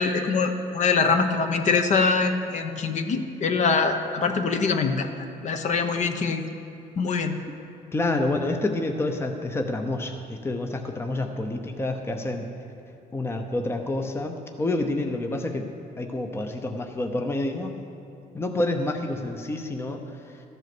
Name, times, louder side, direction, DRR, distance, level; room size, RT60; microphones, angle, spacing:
voice 1, 0.0-5.1 5.4-6.5 7.0-7.3, left 4 dB, 45° left, 6 dB, 0.9 m, -23 dB
voice 2, 7.9-12.5 13.1-15.7 16.0-17.7 18.3-20.4, left 2 dB, 15° left, 4 dB, 0.8 m, -28 dB
13.5 x 8.0 x 6.1 m, 2.6 s
cardioid pair, 110°, 17 cm